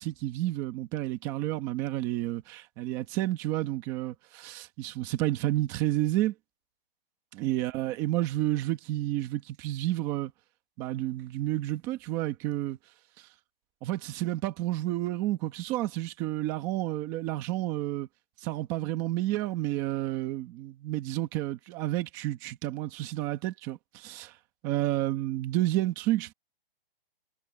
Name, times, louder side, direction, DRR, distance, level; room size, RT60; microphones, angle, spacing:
voice 1, 0.0-6.3 7.4-10.3 10.8-12.8 13.8-18.1 18.4-24.3 24.6-26.3, right 15 dB, 10° right, 1.3 m, -30 dB
hypercardioid pair, 175°, 30 cm